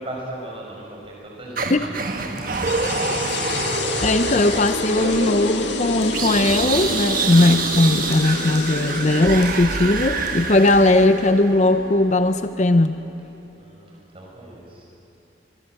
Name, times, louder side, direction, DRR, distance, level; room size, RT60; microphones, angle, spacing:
voice 1, 0.0-2.7 9.8-10.1 13.6-14.9, right 1 dB, 30° right, -2 dB, 5.9 m, -37 dB
sound 1, 1.6-11.7, right 4 dB, 50° right, 1.5 m, -27 dB
Hands, 2.4-11.9 12.4-12.5, left 4 dB, 55° left, 5.4 m, -47 dB
sound 2, 2.5-13.6, left 3 dB, 75° left, 1.8 m, -30 dB
voice 2, 4.0-13.0, left 2 dB, 40° left, 10 dB, 0.6 m, -18 dB
24.0 x 23.5 x 7.8 m, 2.9 s
head